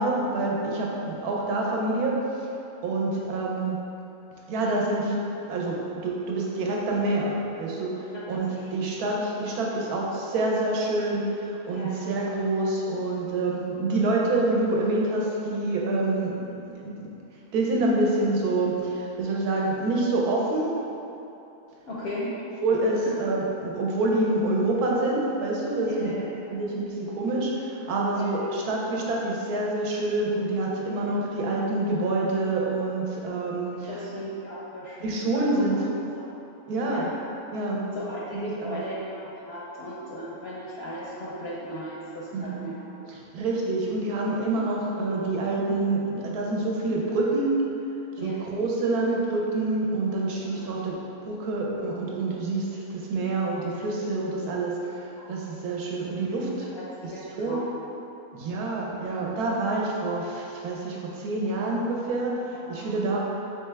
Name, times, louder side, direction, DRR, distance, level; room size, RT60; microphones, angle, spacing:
voice 1, 0.0-2.2 2.8-3.8 4.5-5.2 5.5-17.1 17.5-20.7 22.6-26.1 26.5-33.9 35.0-35.8 36.7-37.1 37.5-37.8 38.3-38.8 42.3-42.7 43.1-47.6 48.2-50.9 51.2-56.7 57.3-57.6 58.3-62.4 62.7-63.2, right 2 dB, 90° right, -3 dB, 1.2 m, -27 dB
voice 2, 8.1-8.6 11.7-12.0 21.9-22.3 23.0-23.1 25.8-26.6 28.1-28.4 30.9-31.1 33.9-36.3 36.8-37.1 37.9-43.1 48.2-48.4 50.4-50.8 55.1-55.5 57.1-57.8 62.5-62.9, equal, 65° left, -7 dB, 0.6 m, -37 dB
3.4 x 3.3 x 3.3 m, 2.9 s
omnidirectional pair, 1.6 m